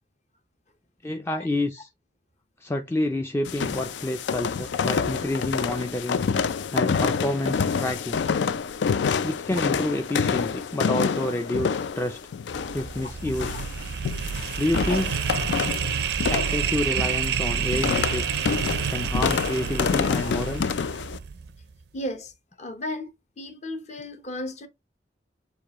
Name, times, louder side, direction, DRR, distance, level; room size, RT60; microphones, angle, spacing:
voice 1, 1.0-1.9 2.6-6.2 6.7-8.2 9.2-12.2 12.7-13.5 14.6-15.2 16.3-18.4 18.9-20.6, left 1 dB, 15° left, 0.4 m, -28 dB
sound 1, 3.5-21.2, left 6 dB, 80° left, 0.4 m, -27 dB
sound 2, 12.5-21.6, right 7 dB, 65° right, 0.4 m, -29 dB
voice 2, 21.9-22.3 22.6-24.7, left 1 dB, 40° left, 0.8 m, -35 dB
6.5 x 2.4 x 2.9 m
head